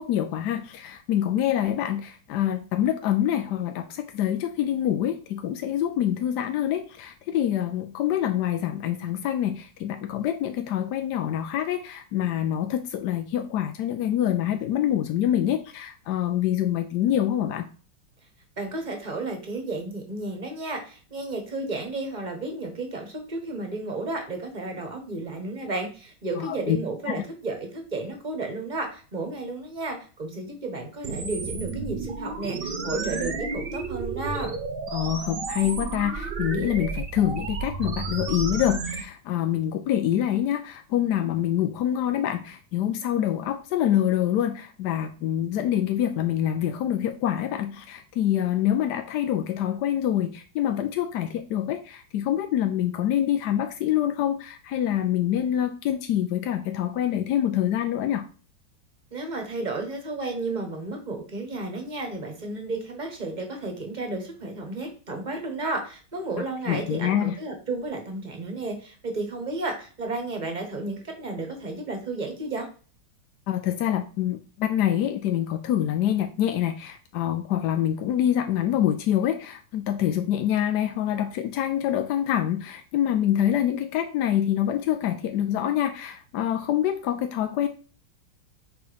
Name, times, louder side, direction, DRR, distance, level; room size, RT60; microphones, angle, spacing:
voice 1, 0.0-17.7 26.4-26.8 27.1-27.2 34.9-58.3 66.7-67.4 73.5-87.7, left 11 dB, 75° left, 7 dB, 1.0 m, -26 dB
voice 2, 18.6-34.6 59.1-72.7, right 2 dB, 25° right, 3 dB, 1.2 m, -32 dB
sound 1, 31.0-39.0, right 4 dB, 85° right, 0.5 m, -32 dB
5.0 x 4.6 x 5.1 m, 0.38 s
omnidirectional pair, 2.3 m